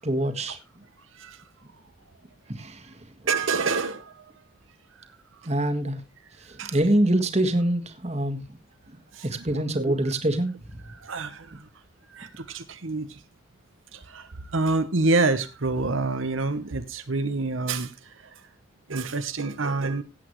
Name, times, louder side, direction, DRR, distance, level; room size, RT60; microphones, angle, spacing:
voice 1, 0.0-0.6 2.5-2.9 5.4-6.0 6.7-8.4 9.2-10.5, right 1 dB, 35° right, 1.6 m, -24 dB
voice 2, 3.3-4.2 6.6-6.8 9.1-9.5 9.8-10.0 10.9-11.7 12.1-13.2 13.9-18.1 18.9-20.0, right 3 dB, 80° right, 1.0 m, -27 dB
17.5 x 8.2 x 3.1 m
head